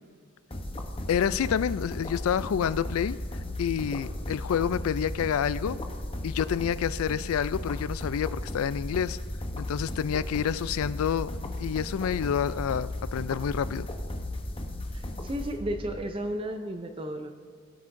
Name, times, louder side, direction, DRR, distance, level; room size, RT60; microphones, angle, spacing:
sound 1, 0.5-16.0, left 1 dB, 25° left, 0.8 m, -35 dB
voice 1, 1.1-3.2 3.6-5.8 6.2-9.2 9.6-11.3 11.6-13.9, left 8 dB, 75° left, 16 dB, 0.3 m, -28 dB
voice 2, 14.9-17.3, right 1 dB, 25° right, 6 dB, 0.5 m, -33 dB
17.5 x 8.4 x 2.6 m, 2.1 s
head